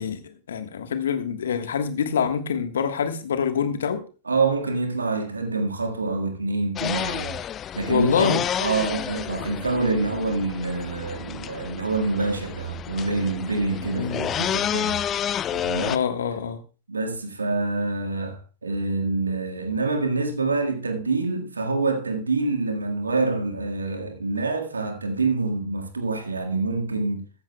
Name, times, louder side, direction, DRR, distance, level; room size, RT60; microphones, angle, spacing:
voice 1, 0.0-4.0 7.9-8.4 13.9-14.2 15.9-16.6, left 7 dB, 65° left, 1.3 m, -25 dB
voice 2, 4.3-7.4 7.7-15.0 15.5-16.0 16.9-27.2, right 3 dB, 75° right, 1.7 m, -26 dB
sound 1, 6.8-16.0, left 10 dB, 30° left, 0.5 m, -30 dB
14.5 x 13.5 x 2.2 m
figure-of-eight pair, 90°, 0 cm